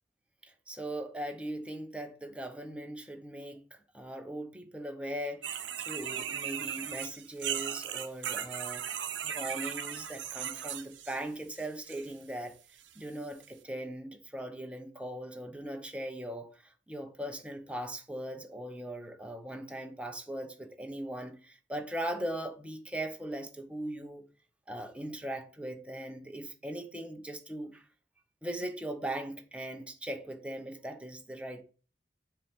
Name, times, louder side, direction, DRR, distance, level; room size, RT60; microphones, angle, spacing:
voice 1, 0.4-8.9 9.2-12.6 12.9-24.2 24.7-27.8 28.4-31.6, right 1 dB, 5° right, 0.9 m, -39 dB
sound 1, 5.4-11.2 11.6-12.1 12.8-12.9 13.4-13.5, right 9 dB, 90° right, 0.8 m, -37 dB
7.5 x 3.3 x 5.7 m
head